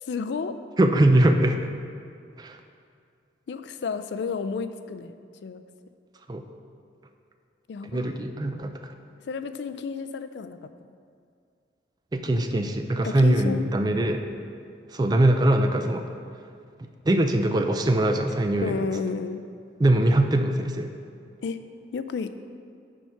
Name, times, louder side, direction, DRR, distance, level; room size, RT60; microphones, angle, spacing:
voice 1, 0.0-0.6 3.5-5.2 5.4-5.6 7.7-8.2 9.2-10.7 13.0-13.7 18.6-19.4 21.4-21.6 21.9-22.3, left 5 dB, 70° left, 10 dB, 0.3 m, -31 dB
voice 2, 0.8-1.6 2.4-2.6 6.3-6.4 7.9-8.9 12.1-14.2 14.9-16.1 16.8-18.9 19.8-20.9, right 1 dB, 20° right, 6 dB, 0.3 m, -22 dB
7.2 x 4.6 x 5.6 m, 2.3 s
head